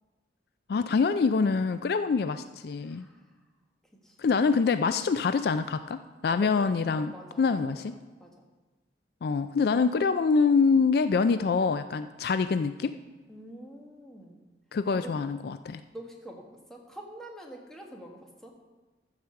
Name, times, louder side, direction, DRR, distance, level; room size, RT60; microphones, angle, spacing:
voice 1, 0.7-3.1 4.2-7.9 9.2-12.9 14.7-15.8, left 5 dB, 60° left, 11 dB, 0.4 m, -25 dB
voice 2, 2.8-3.2 4.0-4.2 6.3-7.8 8.2-8.4 13.3-14.4 14.9-15.2 15.9-18.5, right 1 dB, 5° left, 0 dB, 1.5 m, -46 dB
13.5 x 5.0 x 6.9 m, 1.2 s
head